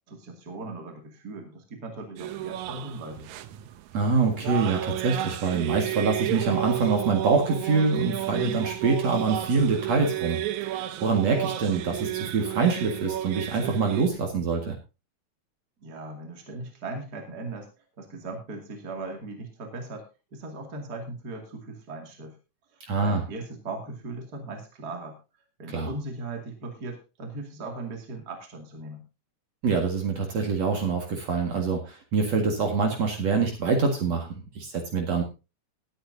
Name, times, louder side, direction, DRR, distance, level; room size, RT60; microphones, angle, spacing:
voice 1, 0.1-3.3 15.8-17.7 18.0-22.4 23.0-25.2 25.6-29.0, right 3 dB, 30° right, 2 dB, 2.7 m, -38 dB
sound 1, 2.2-14.1, right 14 dB, 75° right, 2.0 m, -32 dB
voice 2, 3.9-14.8 22.9-23.2 25.7-25.9 29.6-34.3 34.5-35.2, right 4 dB, 55° right, 2 dB, 2.9 m, -25 dB
19.5 x 9.1 x 2.7 m, 0.29 s
omnidirectional pair, 3.6 m